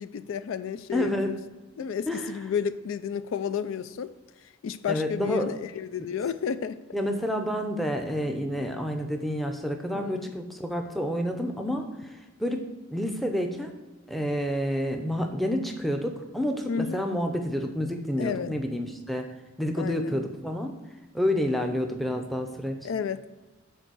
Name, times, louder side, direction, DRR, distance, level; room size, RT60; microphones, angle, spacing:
voice 1, 0.0-1.4 1.8-4.1 4.6-6.8 9.9-10.3 16.7-17.0 18.2-18.5 19.8-20.2 22.8-23.3, left 7 dB, 70° left, 13 dB, 0.3 m, -31 dB
voice 2, 0.9-1.3 1.8-2.3 4.9-5.5 6.9-13.7 14.1-20.8 21.1-22.9, equal, ahead, 4 dB, 0.6 m, -29 dB
6.7 x 4.4 x 6.1 m, 1.2 s
head